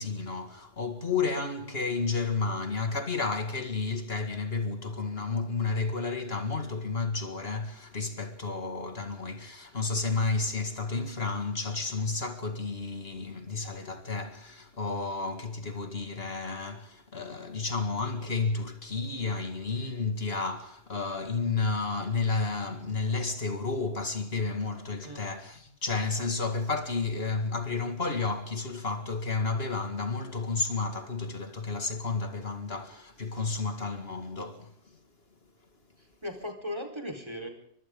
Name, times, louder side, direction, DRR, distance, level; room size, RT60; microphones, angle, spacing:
voice 1, 0.0-34.7, left 4 dB, 60° left, 2.3 m, -31 dB
voice 2, 36.0-37.5, left 1 dB, 25° right, 4.5 m, -38 dB
30.0 x 24.5 x 3.8 m
omnidirectional pair, 1.2 m